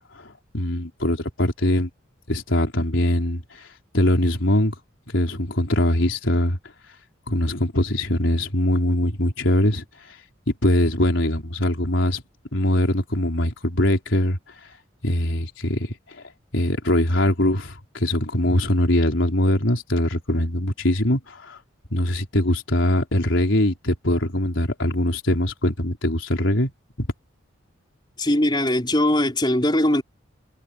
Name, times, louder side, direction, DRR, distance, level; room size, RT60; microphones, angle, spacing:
voice 1, 0.2-1.9 2.3-3.7 3.9-4.7 5.1-6.6 7.3-10.2 10.6-12.2 12.5-14.4 15.0-15.9 16.5-21.6 21.9-26.7 27.0-27.1, left 1 dB, 75° left, 3.9 m, -22 dB
voice 2, 28.2-30.0, left 1 dB, 25° left, 4.6 m, -20 dB
head